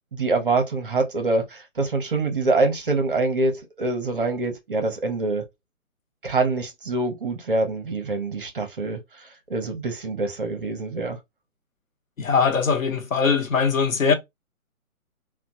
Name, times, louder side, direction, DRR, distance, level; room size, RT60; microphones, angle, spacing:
voice 1, 0.1-5.4 6.2-11.2, right 3 dB, 40° right, 0.6 m, -25 dB
voice 2, 12.2-14.1, left 5 dB, 65° left, 0.9 m, -21 dB
2.9 x 2.2 x 2.7 m
figure-of-eight pair, 145°, 44 cm